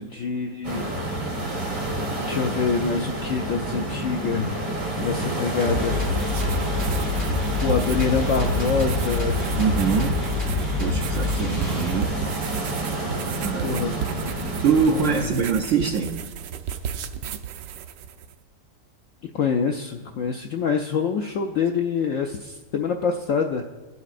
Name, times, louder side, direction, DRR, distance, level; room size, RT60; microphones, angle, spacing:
voice 1, 0.0-1.3 2.1-4.6 5.0-6.0 7.6-9.3 13.6-14.5 14.9-15.3 19.3-23.6, left 5 dB, 75° left, 4 dB, 0.7 m, -26 dB
sound 1, 0.6-15.2, right 1 dB, 25° right, 1.7 m, -29 dB
sound 2, 5.6-12.3, left 3 dB, 10° left, 3.3 m, -27 dB
sound 3, 5.6-18.3, right 8 dB, 85° right, 1.2 m, -34 dB
voice 2, 9.6-10.2 10.8-12.5 13.3-13.9 14.6-16.2, right 6 dB, 65° right, 3 dB, 0.8 m, -24 dB
16.5 x 8.2 x 2.5 m, 1.2 s
omnidirectional pair, 1.8 m